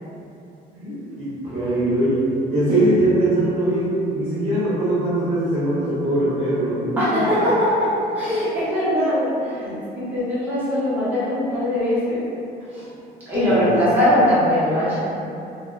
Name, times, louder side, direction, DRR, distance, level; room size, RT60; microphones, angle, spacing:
voice 1, 0.7-7.4 13.4-14.0, right 1 dB, 40° right, -11 dB, 0.7 m, -22 dB
voice 2, 7.0-12.2 12.7-12.9 13.3-15.0, left 1 dB, 10° right, -13 dB, 0.9 m, -21 dB
3.1 x 2.5 x 2.3 m, 2.7 s
cardioid pair, 170°, 17 cm